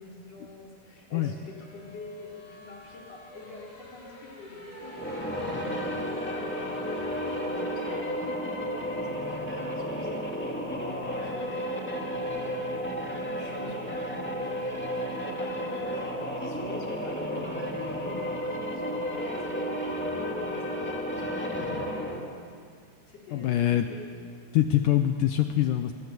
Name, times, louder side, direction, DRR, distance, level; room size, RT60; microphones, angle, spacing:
voice 1, 0.0-22.5 23.1-24.2, left 2 dB, 40° left, -2 dB, 4.9 m, -46 dB
sound 1, 1.3-20.0, left 1 dB, 25° left, 4.1 m, -49 dB
sound 2, 4.8-22.4, equal, 5° left, 1.2 m, -32 dB
voice 2, 23.3-23.9 24.5-25.9, left 12 dB, 80° left, 7 dB, 1.9 m, -24 dB
27.0 x 18.5 x 8.3 m, 2.1 s
omnidirectional pair, 4.9 m